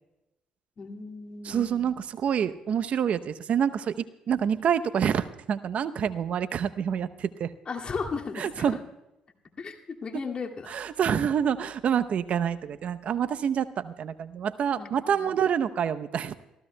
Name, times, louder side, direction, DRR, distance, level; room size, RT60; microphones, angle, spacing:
voice 1, 0.8-1.9 7.7-8.8 9.6-10.7 14.8-15.4, left 4 dB, 45° left, 1 dB, 2.2 m, -36 dB
voice 2, 1.4-7.5 8.4-8.8 10.7-16.3, right 8 dB, 55° right, 11 dB, 0.7 m, -27 dB
29.0 x 15.5 x 2.2 m, 0.95 s
hypercardioid pair, 55°, 3 cm